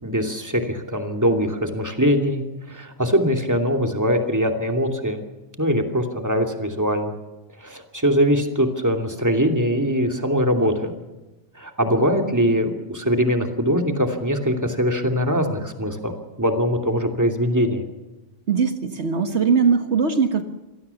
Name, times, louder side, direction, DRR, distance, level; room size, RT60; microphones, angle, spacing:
voice 1, 0.0-2.4 2.7-5.2 5.6-7.1 7.6-10.9 11.5-16.1 16.4-17.8, equal, 15° right, 5 dB, 2.7 m, -22 dB
voice 2, 18.5-20.4, right 5 dB, 65° right, 7 dB, 1.7 m, -20 dB
26.5 x 18.0 x 7.1 m, 1.1 s
omnidirectional pair, 1.2 m